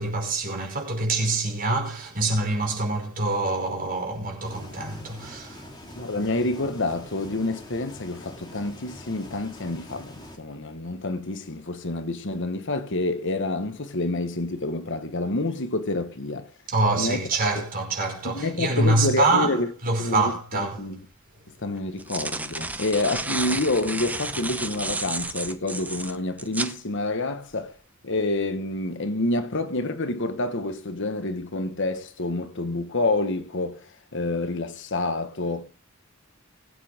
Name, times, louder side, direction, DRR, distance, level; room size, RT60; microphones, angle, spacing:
voice 1, 0.0-5.7 16.7-20.9, right 2 dB, 40° right, 5.3 m, -25 dB
sound 1, 4.4-10.4, left 1 dB, 20° left, 3.6 m, -44 dB
voice 2, 5.9-16.5 17.0-17.2 17.5-17.6 18.2-19.7 20.0-21.0 21.6-27.8 28.0-35.6, left 2 dB, 55° left, 1.3 m, -28 dB
sound 2, 20.7-20.8 21.8-26.8, right 2 dB, 5° right, 0.8 m, -32 dB
21.5 x 8.9 x 3.5 m
head